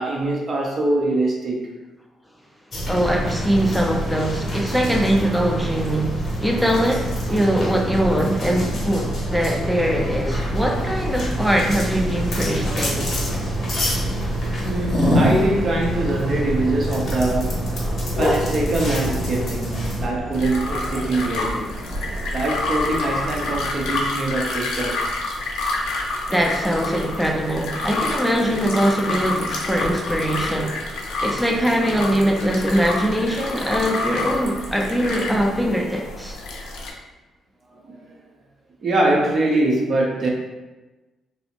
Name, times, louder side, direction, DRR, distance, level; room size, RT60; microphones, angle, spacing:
voice 1, 0.0-1.6 14.5-17.7 18.2-21.7 22.3-25.1 37.7-38.0 38.8-40.3, right 2 dB, 50° right, -1 dB, 0.6 m, -23 dB
sound 1, 2.7-20.1, equal, 50° left, 0.8 m, -26 dB
voice 2, 2.9-13.1 26.3-36.4, equal, ahead, 0 dB, 0.4 m, -22 dB
Subway metro underground, 9.8-24.0, equal, 85° right, 0.6 m, -32 dB
sound 2, 20.3-36.9, left 2 dB, 90° left, 0.4 m, -28 dB
2.5 x 2.0 x 2.8 m, 1.1 s
cardioid pair, 90°, 0 cm